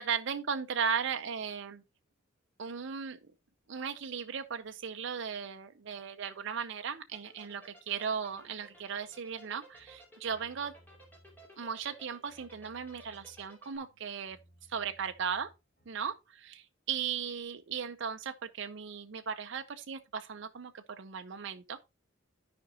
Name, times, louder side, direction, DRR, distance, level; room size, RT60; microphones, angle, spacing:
voice 1, 0.0-1.8 2.6-3.2 3.7-10.7 11.6-14.4 14.7-15.5 15.9-21.9, right 7 dB, 60° right, 0.6 m, -37 dB
sound 1, 7.1-13.8, right 1 dB, 10° left, 2.7 m, -55 dB
sound 2, 8.3-16.2, equal, 45° left, 3.5 m, -64 dB
13.0 x 5.1 x 2.8 m
head